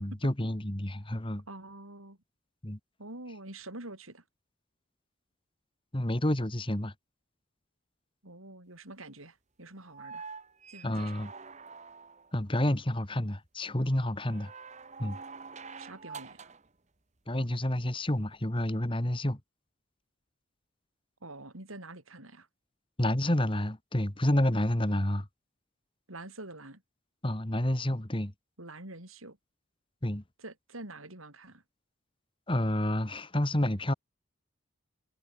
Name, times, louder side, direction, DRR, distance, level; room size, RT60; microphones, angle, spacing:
voice 1, 0.0-1.4 2.6-2.8 5.9-6.9 10.8-11.3 12.3-14.5 15.0-15.2 17.3-19.4 23.0-25.3 27.2-28.3 30.0-30.2 32.5-33.9, left 1 dB, 25° left, 1.9 m, -29 dB
voice 2, 1.5-2.2 3.0-4.2 8.2-10.3 10.7-11.2 15.8-16.5 21.2-22.5 26.1-26.8 28.6-29.4 30.4-31.6, right 2 dB, 85° right, 6.9 m, -46 dB
sound 1, 9.8-12.4 14.2-16.7 18.3-18.4, right 5 dB, 35° right, 1.5 m, -46 dB
head